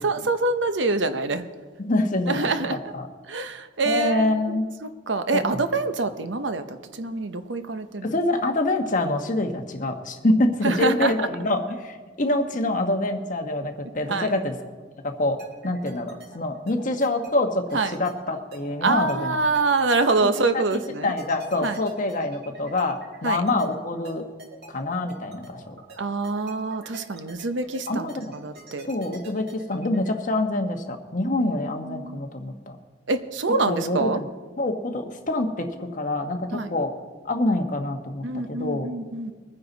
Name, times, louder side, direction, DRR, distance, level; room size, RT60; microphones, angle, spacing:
voice 1, 0.0-1.5 2.3-2.9 3.2-8.1 10.6-11.3 14.1-14.3 17.7-17.9 18.8-21.1 21.6-21.8 23.2-23.4 26.0-28.9 31.4-32.2 33.1-34.2 36.5-36.7 38.2-39.3, right 3 dB, 75° right, 9 dB, 0.9 m, -26 dB
voice 2, 1.8-3.1 3.8-4.7 5.5-5.6 8.0-14.5 15.0-19.3 20.4-20.5 21.0-24.2 24.7-25.7 27.9-28.3 28.9-32.8 33.7-34.3 34.6-36.9 37.3-38.9, left 2 dB, 45° left, 4 dB, 1.2 m, -26 dB
sound 1, 15.4-30.1, right 2 dB, 60° right, 2.4 m, -45 dB
22.0 x 9.7 x 4.0 m, 1.4 s
head